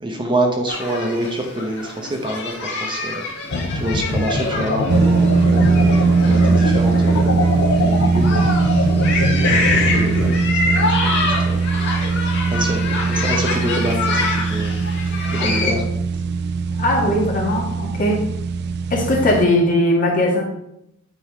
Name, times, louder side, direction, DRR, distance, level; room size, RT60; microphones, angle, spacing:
voice 1, 0.0-8.9 9.4-11.7 12.5-15.8 17.0-17.2, right 1 dB, 20° right, 2 dB, 0.9 m, -27 dB
sound 1, 0.7-15.7, left 3 dB, 55° left, 1.8 m, -26 dB
sound 2, 3.5-10.3, left 2 dB, 75° left, 1.0 m, -23 dB
sound 3, 4.9-19.4, right 4 dB, 50° right, 0.4 m, -20 dB
voice 2, 15.4-15.8 16.7-18.2 18.9-20.4, left 1 dB, 40° left, -2 dB, 1.9 m, -19 dB
9.0 x 3.9 x 4.9 m, 0.80 s
head